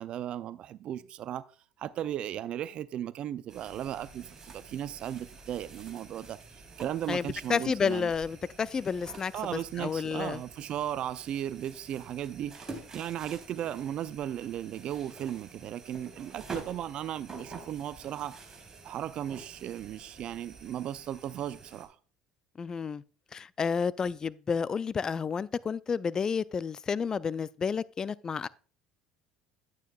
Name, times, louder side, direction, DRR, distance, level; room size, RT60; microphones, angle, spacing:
voice 1, 0.0-1.4 1.8-8.1 9.3-18.5 18.8-22.0, right 11 dB, 50° right, 0.5 m, -36 dB
sound 1, 3.5-21.9, right 3 dB, 25° right, 3.8 m, -49 dB
voice 2, 7.1-9.3 9.8-10.4 22.6-23.0 23.3-28.5, left 6 dB, 30° left, 0.4 m, -30 dB
10.5 x 9.1 x 2.4 m
hypercardioid pair, 70°, 2 cm